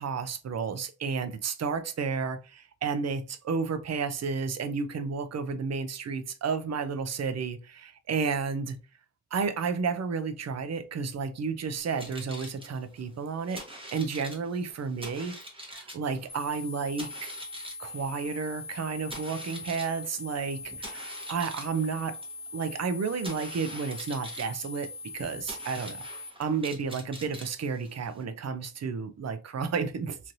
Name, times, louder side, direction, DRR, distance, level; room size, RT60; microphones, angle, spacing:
voice 1, 0.0-8.8 9.3-13.7 13.9-15.4 15.7-17.3 17.8-22.2 22.5-26.1 26.4-30.2, right 5 dB, 40° right, 0.4 m, -32 dB
sound 1, 11.8-28.2, right 1 dB, 10° right, 0.9 m, -45 dB
sound 2, 16.3-26.3, left 3 dB, 15° left, 0.5 m, -42 dB
3.1 x 2.6 x 2.6 m
wide cardioid pair, 125°, 44 cm